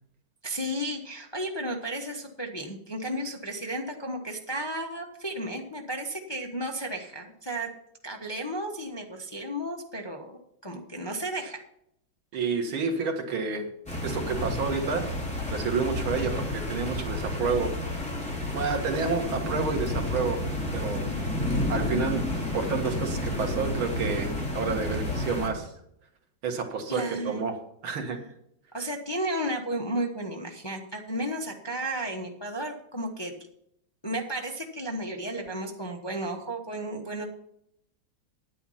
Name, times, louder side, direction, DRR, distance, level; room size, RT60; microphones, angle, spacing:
voice 1, 0.4-7.7 8.0-11.6 12.3-12.5 26.9-27.4 28.7-33.3 34.0-37.3, right 1 dB, 20° left, 2 dB, 0.8 m, -33 dB
voice 2, 12.3-13.7 14.0-15.1 15.5-17.7 18.5-20.4 20.7-21.0 21.7-22.2 22.5-25.7 26.4-27.5 27.8-28.2, right 4 dB, 90° right, 4 dB, 2.4 m, -29 dB
sound 1, 13.9-25.5, left 1 dB, 5° left, 2.7 m, -31 dB
10.0 x 9.2 x 5.6 m, 0.75 s
omnidirectional pair, 2.2 m